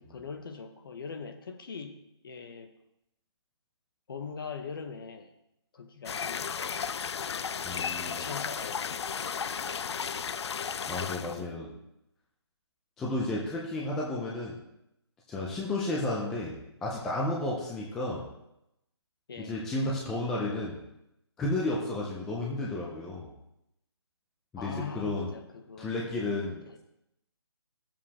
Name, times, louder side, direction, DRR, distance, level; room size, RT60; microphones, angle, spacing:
voice 1, 0.0-2.7 4.1-5.3 5.7-7.5 8.0-10.0 11.2-11.9 13.3-13.5 19.3-19.6 24.6-26.0 26.7-26.8, left 5 dB, 50° left, 7 dB, 1.0 m, -43 dB
sound 1, 6.1-11.4, left 6 dB, 70° left, 0.4 m, -34 dB
voice 2, 7.6-8.3 10.9-11.7 13.0-14.6 15.3-18.3 19.4-20.8 21.4-23.3 24.5-25.3 25.8-26.8, left 2 dB, 5° left, -4 dB, 0.4 m, -32 dB
12.5 x 7.5 x 2.9 m, 0.84 s
hypercardioid pair, 165°, 14 cm